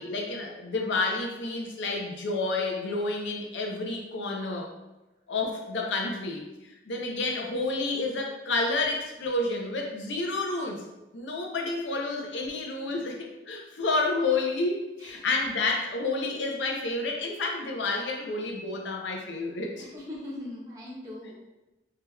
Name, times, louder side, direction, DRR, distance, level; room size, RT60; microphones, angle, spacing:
voice 1, 0.0-4.7 5.3-10.8 11.1-19.8, left 3 dB, 80° left, 1 dB, 0.5 m, -30 dB
voice 2, 19.9-21.3, left 1 dB, 15° right, -7 dB, 0.6 m, -40 dB
3.5 x 2.8 x 2.2 m, 0.99 s
head